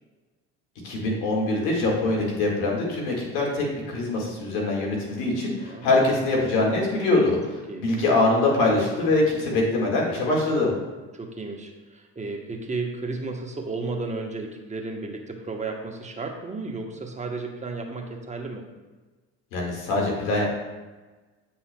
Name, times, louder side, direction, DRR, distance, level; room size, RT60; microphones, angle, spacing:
voice 1, 0.8-10.7 19.5-20.4, left 2 dB, 80° left, -2 dB, 1.8 m, -23 dB
voice 2, 5.6-6.1 7.7-7.9 11.1-18.6, right 3 dB, 20° right, 2 dB, 1.0 m, -33 dB
8.1 x 5.6 x 2.2 m, 1.2 s
supercardioid pair, 75°, 36 cm